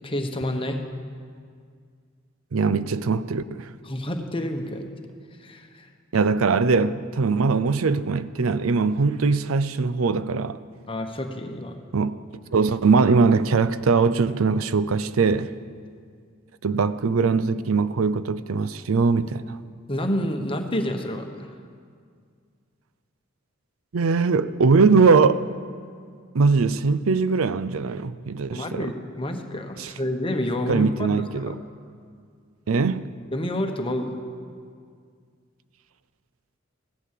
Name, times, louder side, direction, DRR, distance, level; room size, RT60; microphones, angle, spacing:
voice 1, 0.0-0.8 3.8-4.9 5.4-5.9 10.9-11.8 19.9-21.5 28.5-31.1 31.4-31.5 33.3-34.2, left 1 dB, 25° left, 1.2 m, -28 dB
voice 2, 2.5-3.7 6.1-10.6 11.9-12.2 12.5-15.5 16.6-19.6 23.9-25.4 26.3-28.9 29.8-29.9 30.7-31.6 32.7-33.1, right 4 dB, 85° right, 0.5 m, -21 dB
16.0 x 12.0 x 7.6 m
head